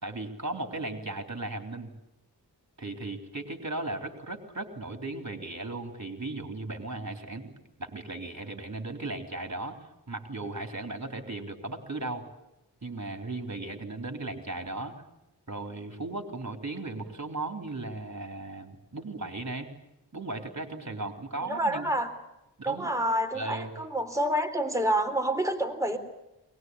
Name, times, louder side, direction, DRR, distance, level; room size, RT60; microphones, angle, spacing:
voice 1, 0.0-1.9 2.8-9.8 10.1-12.2 12.8-15.0 15.5-19.7 20.1-21.9 22.6-22.9 23.3-23.7, right 2 dB, 40° right, 5 dB, 3.8 m, -36 dB
voice 2, 21.4-22.1 22.6-26.0, right 1 dB, 5° right, 4 dB, 3.6 m, -28 dB
22.5 x 20.0 x 9.6 m, 0.92 s
wide cardioid pair, 45°, 43 cm